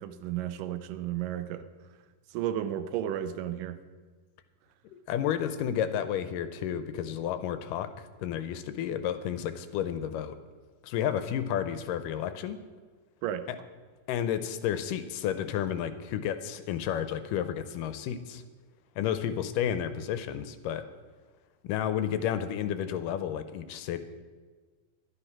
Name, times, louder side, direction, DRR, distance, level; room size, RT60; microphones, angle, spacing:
voice 1, 0.0-1.6 2.3-3.8 13.2-13.5, right 11 dB, 80° right, 11 dB, 2.3 m, -33 dB
voice 2, 4.8-10.4 10.8-12.6 13.5-13.6 14.1-18.4 19.0-20.8 21.6-24.0, left 9 dB, 80° left, 11 dB, 2.2 m, -31 dB
12.0 x 10.0 x 5.9 m, 1.5 s
omnidirectional pair, 3.9 m